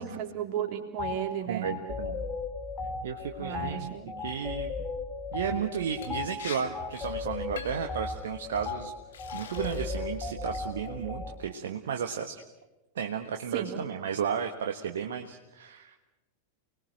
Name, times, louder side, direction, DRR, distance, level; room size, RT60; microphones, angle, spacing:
voice 1, 0.0-1.7 3.4-4.1 6.1-6.2 13.5-13.8, right 9 dB, 45° right, 3 dB, 3.5 m, -34 dB
sound 1, 1.0-1.2 1.6-11.3, left 4 dB, 25° left, 3.1 m, -36 dB
voice 2, 1.5-2.2 3.0-3.9 4.2-4.7 5.3-8.9 9.3-12.4 12.9-15.9, right 7 dB, 60° right, 5 dB, 1.4 m, -33 dB
Liquid, 6.0-6.1 6.4-6.6 6.9-7.1 7.6-7.9 8.5-8.7 9.1-10.0 10.4-10.8, left 7 dB, 60° left, 2.8 m, -43 dB
29.5 x 21.0 x 6.5 m, 1.1 s
figure-of-eight pair, 90°, 0 cm